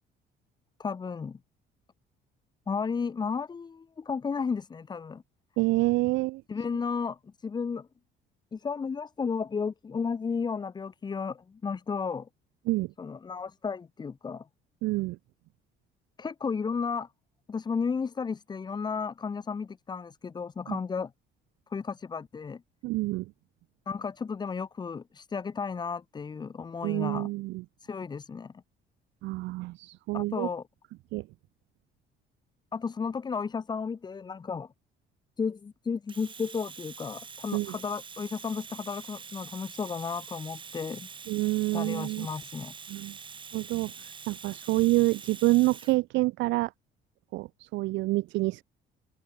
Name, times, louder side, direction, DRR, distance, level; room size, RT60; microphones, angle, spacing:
voice 1, 0.8-1.4 2.7-5.2 6.5-7.9 8.5-12.3 13.0-14.5 16.2-17.1 17.5-21.1 21.7-22.6 23.9-27.3 27.8-28.5 30.1-30.6 32.7-34.7 35.4-41.1 41.7-42.7, left 5 dB, 20° left, 0.9 m, -33 dB
voice 2, 5.6-6.4 12.7-12.9 14.8-15.2 20.7-20.8 22.8-23.3 26.8-27.6 29.2-30.5 31.1-31.3 37.5-37.8 41.3-42.3 42.9-43.1 43.5-43.9 44.3-46.7 47.3-48.6, right 20 dB, 80° right, 0.4 m, -27 dB
Domestic sounds home sounds, 36.1-46.0, right 6 dB, 25° right, 1.6 m, -45 dB
open air
cardioid pair, 145°, 19 cm